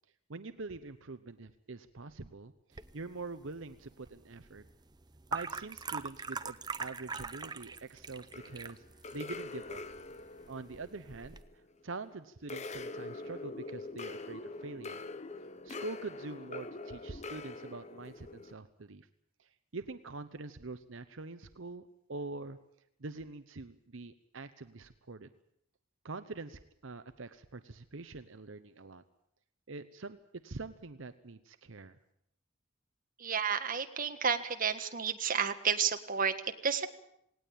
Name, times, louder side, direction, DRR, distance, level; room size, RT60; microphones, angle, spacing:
voice 1, 0.3-4.6 5.3-8.8 9.1-9.8 10.5-11.4 11.8-15.0 15.6-19.1 19.4-22.6 23.0-25.3 26.0-29.0 29.7-30.2 30.4-32.0, right 3 dB, 70° right, 11 dB, 0.9 m, -44 dB
sound 1, 2.7-11.4, right 4 dB, 20° right, 0.7 m, -43 dB
sound 2, 8.3-11.9 12.5-18.5, left 3 dB, 35° left, 0.9 m, -44 dB
voice 2, 33.2-36.9, right 6 dB, 45° right, 8 dB, 1.5 m, -31 dB
18.5 x 18.5 x 8.7 m, 0.75 s
head